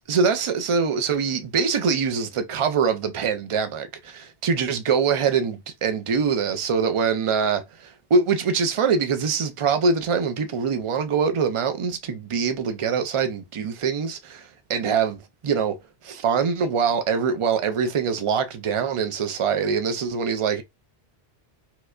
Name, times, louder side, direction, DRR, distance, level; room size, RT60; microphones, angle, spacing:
voice 1, 0.1-15.8 16.0-20.6, right 5 dB, 55° right, 0.3 m, -24 dB
4.5 x 2.2 x 2.4 m
omnidirectional pair, 1.1 m